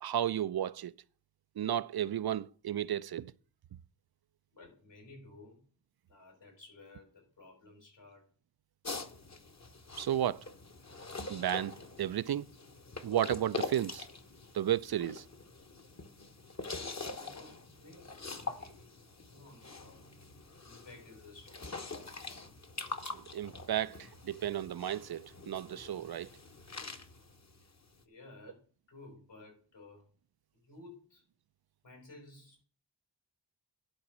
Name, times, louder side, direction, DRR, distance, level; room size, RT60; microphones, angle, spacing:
voice 1, 0.0-0.9 1.6-3.3 10.0-10.4 11.3-12.5 13.0-14.1 14.5-15.2 23.1-26.3, right 10 dB, 60° right, 0.5 m, -33 dB
voice 2, 4.5-5.6 6.1-8.3 16.8-18.9 19.3-20.0 20.6-21.8 27.6-27.7 28.0-30.1 30.5-31.2 31.8-32.7, left 2 dB, 80° left, 5.6 m, -55 dB
sound 1, 8.8-28.0, left 3 dB, 40° left, 1.1 m, -44 dB
11.5 x 4.1 x 6.1 m
cardioid pair, 45°, 43 cm